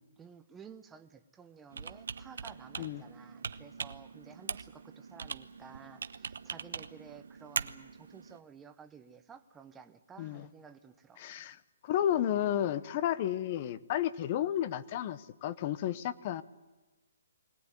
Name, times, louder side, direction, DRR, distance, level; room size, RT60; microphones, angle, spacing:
voice 1, 0.2-11.2, right 6 dB, 10° right, 8 dB, 0.8 m, -53 dB
Computer keyboard, 1.7-8.4, right 6 dB, 70° right, 0.9 m, -41 dB
voice 2, 11.2-11.6 11.8-16.4, left 11 dB, 30° left, 16 dB, 0.8 m, -32 dB
22.0 x 18.0 x 9.7 m, 1.1 s
hypercardioid pair, 165°, 0 cm